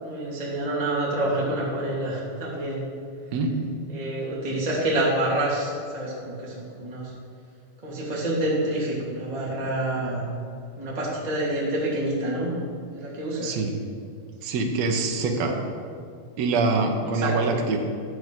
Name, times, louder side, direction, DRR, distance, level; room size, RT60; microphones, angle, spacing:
voice 1, 0.0-2.8 3.9-7.1 7.8-10.2 10.7-12.5 12.9-13.6 15.1-15.6 17.1-17.6, right 1 dB, 15° right, -6 dB, 2.4 m, -27 dB
voice 2, 13.4-13.8 14.4-15.6 16.4-17.8, right 3 dB, 60° right, 2 dB, 2.1 m, -24 dB
13.0 x 7.8 x 6.4 m, 2.3 s
omnidirectional pair, 3.9 m